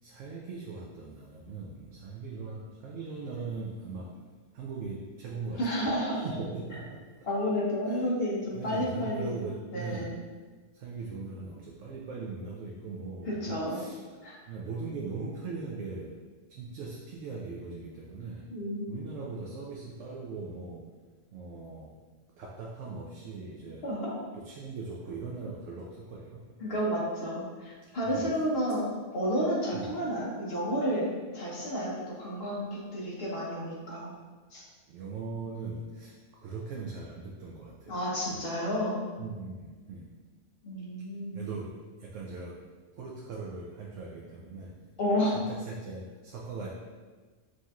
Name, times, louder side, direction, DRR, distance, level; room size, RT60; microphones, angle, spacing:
voice 1, 0.0-4.3 4.5-6.0 6.2-7.3 7.9-8.1 8.5-10.1 10.7-14.0 14.5-16.2 16.5-18.5 18.9-20.9 21.3-22.0 22.4-23.9 24.3-26.8 28.0-28.3 29.7-29.9 34.9-38.0 38.3-38.5 39.2-40.1 41.3-42.6 43.0-44.9 45.3-46.7, right 4 dB, 80° right, -2 dB, 0.9 m, -40 dB
voice 2, 5.5-6.2 7.2-9.4 9.7-10.1 13.3-13.8 14.2-14.3 18.5-18.8 23.8-24.2 26.6-34.1 34.5-34.6 37.9-39.0 40.6-41.5 45.0-45.4, equal, 50° left, -6 dB, 1.3 m, -31 dB
6.3 x 2.7 x 2.4 m, 1.4 s
omnidirectional pair, 1.3 m